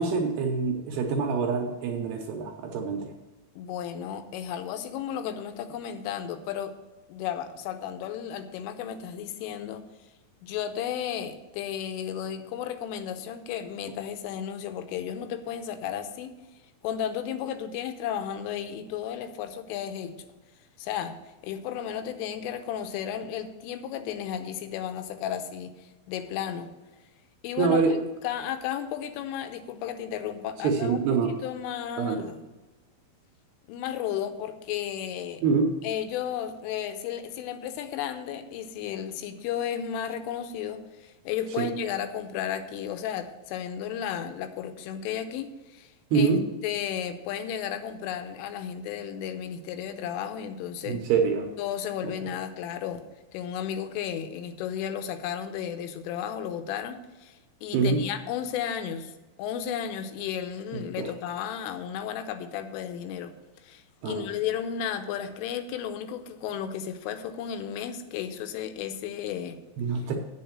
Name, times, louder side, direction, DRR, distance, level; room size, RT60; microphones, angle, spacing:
voice 1, 0.0-3.1 27.6-28.0 30.6-31.3 32.0-32.2 35.4-35.8 41.6-41.7 46.1-46.4 50.9-51.5 57.7-58.0 60.7-61.1 64.0-64.3 69.8-70.2, right 5 dB, 75° right, 2 dB, 2.6 m, -25 dB
voice 2, 3.6-6.7 7.1-9.8 10.4-16.4 16.8-20.3 20.8-21.2 21.4-26.7 27.4-27.8 28.2-32.4 33.7-35.4 35.8-46.3 46.6-51.0 51.6-53.0 53.3-59.1 59.4-69.6, left 9 dB, 90° left, 8 dB, 3.4 m, -33 dB
8.6 x 6.9 x 7.3 m, 1.1 s
omnidirectional pair, 5.6 m